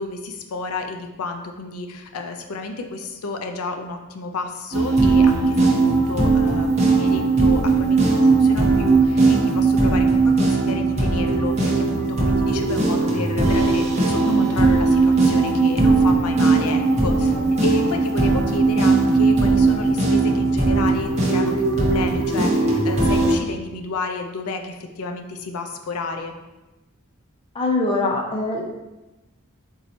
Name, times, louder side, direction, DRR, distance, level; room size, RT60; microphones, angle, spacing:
voice 1, 0.0-17.4 17.6-26.3, left 3 dB, 85° left, 5 dB, 0.5 m, -31 dB
sound 1, 4.7-23.4, right 3 dB, 30° right, 0.8 m, -18 dB
voice 2, 27.6-28.6, left 2 dB, 25° left, 0 dB, 0.5 m, -23 dB
4.3 x 2.7 x 4.1 m, 1.0 s
head